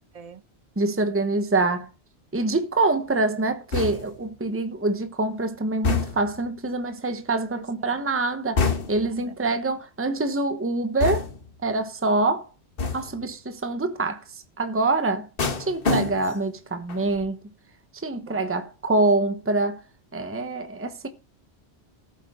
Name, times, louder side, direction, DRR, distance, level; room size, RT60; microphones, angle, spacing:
voice 1, 0.8-1.9 2.3-11.3 11.6-12.5 12.9-15.3 15.6-17.4 18.0-19.8 20.1-21.1, right 2 dB, 15° right, 1.0 m, -25 dB
sound 1, 3.7-4.3 5.8-6.4 8.6-9.2 11.0-11.6 12.8-13.2 15.4-16.5 16.9-17.3, left 4 dB, 60° left, 1.4 m, -27 dB
voice 2, 7.5-8.0 8.9-9.3 18.3-18.4, right 6 dB, 40° right, 0.8 m, -46 dB
14.5 x 8.1 x 3.7 m
omnidirectional pair, 1.1 m